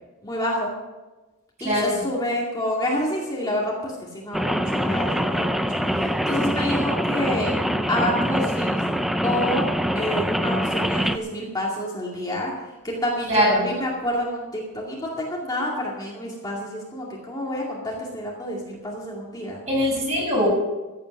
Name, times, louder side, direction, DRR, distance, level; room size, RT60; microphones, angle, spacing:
voice 1, 0.2-0.7 1.6-7.5 7.9-8.9 9.2-9.7 9.9-19.6, left 1 dB, 15° left, -4 dB, 2.3 m, -28 dB
voice 2, 1.6-2.0 13.3-13.6 19.7-20.5, equal, 30° right, -2 dB, 6.0 m, -21 dB
Rain, 4.3-11.2, equal, ahead, 0.5 m, -24 dB
15.0 x 9.0 x 6.6 m, 1.2 s
head